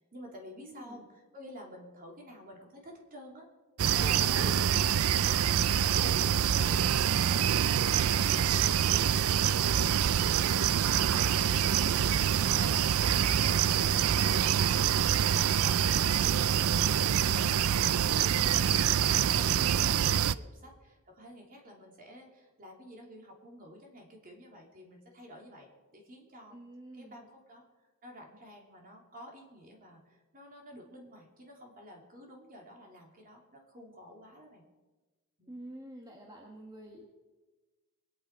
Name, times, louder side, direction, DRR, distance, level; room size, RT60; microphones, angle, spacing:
voice 1, 0.0-3.5 3.9-8.2 8.7-12.2 12.4-13.7 14.0-16.4 16.7-18.6 19.0-26.6 26.9-34.6 35.4-35.7, equal, 40° right, 0 dB, 3.1 m, -50 dB
voice 2, 0.6-1.0 4.0-4.9 6.5-7.7 26.5-27.2 35.5-37.1, equal, 20° right, 0 dB, 1.5 m, -48 dB
sound 1, 3.8-20.3, right 9 dB, 80° right, 0.4 m, -26 dB
22.5 x 9.0 x 4.9 m, 1.2 s
head